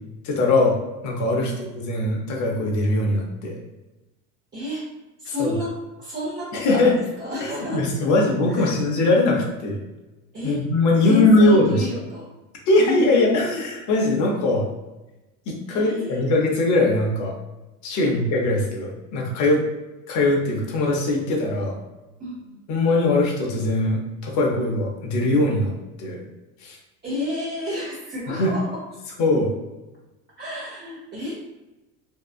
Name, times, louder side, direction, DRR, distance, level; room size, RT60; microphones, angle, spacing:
voice 1, 0.2-3.5 5.3-5.6 6.6-7.0 7.4-9.8 10.4-11.9 12.7-14.7 15.5-17.3 17.8-19.6 20.1-21.8 22.7-25.7 26.0-26.2 26.6-26.8 28.3-28.5 29.2-29.5, left 2 dB, 40° left, 0 dB, 0.8 m, -21 dB
voice 2, 4.5-4.9 5.2-7.9 8.5-8.8 10.3-10.6 11.0-12.3 12.7-13.6 15.7-16.2 17.9-18.2 22.2-22.6 27.0-28.8 30.4-31.4, left 1 dB, 20° right, -8 dB, 0.8 m, -31 dB
2.7 x 2.2 x 2.4 m, 1.0 s
hypercardioid pair, 95°, 44 cm